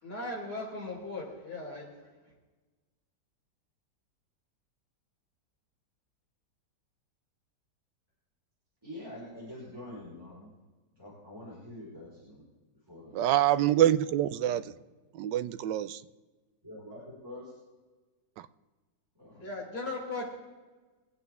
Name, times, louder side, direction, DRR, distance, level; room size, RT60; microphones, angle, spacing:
voice 1, 0.0-1.9 19.4-20.3, left 2 dB, 60° left, -4 dB, 4.9 m, -37 dB
voice 2, 8.8-10.6 10.9-12.4 12.9-13.2 14.4-14.7 16.6-17.5 19.1-19.5, left 1 dB, 15° right, -9 dB, 4.9 m, -46 dB
voice 3, 13.1-14.6 15.1-16.0 18.4-18.5, right 12 dB, 85° right, 14 dB, 1.3 m, -26 dB
22.5 x 9.3 x 3.6 m, 1.3 s
omnidirectional pair, 1.9 m